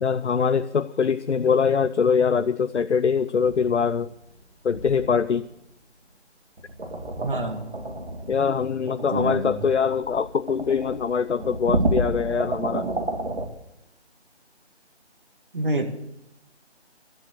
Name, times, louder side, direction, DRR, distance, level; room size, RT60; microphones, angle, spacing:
voice 1, 0.0-4.1 4.6-5.5 8.3-12.9, left 6 dB, 80° left, 12 dB, 0.7 m, -23 dB
sound 1, 3.4-4.4 4.7-5.5 6.6-13.5, right 1 dB, 65° right, 2.8 m, -30 dB
voice 2, 7.2-7.7 9.1-9.6 15.5-15.9, right 1 dB, 50° right, 6 dB, 1.8 m, -27 dB
13.0 x 9.7 x 8.0 m, 0.84 s
figure-of-eight pair, 170°, 34 cm